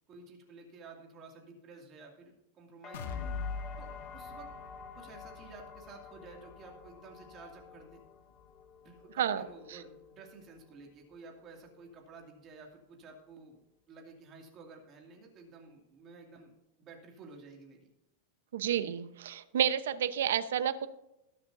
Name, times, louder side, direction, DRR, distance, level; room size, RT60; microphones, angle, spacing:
voice 1, 0.1-3.2 3.8-4.5 4.9-8.0 8.8-17.9, right 4 dB, 25° right, 1 dB, 2.4 m, -52 dB
sound 1, 2.8-10.7 11.1-11.8, left 5 dB, 20° left, 0.8 m, -51 dB
sound 2, 2.9-10.7 11.1-11.2 11.7-11.8, left 5 dB, 65° left, 1.5 m, -45 dB
voice 2, 18.5-20.9, right 9 dB, 80° right, 12 dB, 0.9 m, -30 dB
21.0 x 7.4 x 2.7 m, 0.88 s
supercardioid pair, 175°, 0 cm